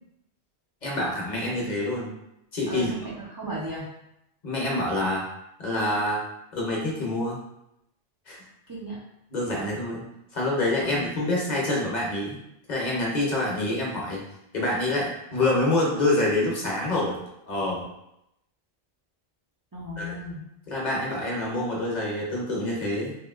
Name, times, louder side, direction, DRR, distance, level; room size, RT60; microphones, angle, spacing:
voice 1, 0.8-2.1 2.5-3.1 4.4-5.2 5.6-6.2 6.5-7.4 8.3-8.4 9.3-10.0 10.3-12.4 12.7-14.2 14.5-17.2 17.5-17.9 20.0-20.2 20.7-23.1, left 1 dB, 50° left, -4 dB, 0.7 m, -26 dB
voice 2, 2.7-3.9 8.7-9.0 9.5-9.7 10.8-11.3 19.7-20.4, right 1 dB, 35° right, -6 dB, 0.3 m, -36 dB
2.9 x 2.6 x 2.3 m, 0.83 s
omnidirectional pair, 1.1 m